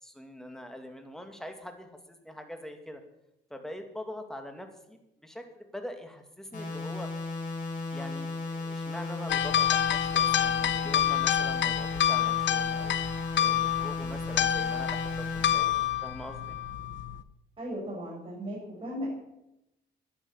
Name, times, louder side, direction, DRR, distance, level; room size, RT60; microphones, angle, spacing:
voice 1, 0.0-3.0 3.5-7.1 7.9-13.0 13.3-16.6, left 1 dB, ahead, 5 dB, 2.3 m, -43 dB
sound 1, 6.5-15.5, left 3 dB, 40° left, 6.1 m, -35 dB
sound 2, 9.3-17.2, left 11 dB, 65° left, 0.9 m, -28 dB
voice 2, 17.6-19.1, equal, 25° right, -5 dB, 6.5 m, -36 dB
10.5 x 10.5 x 7.3 m, 0.88 s
cardioid pair, 90°, 20 cm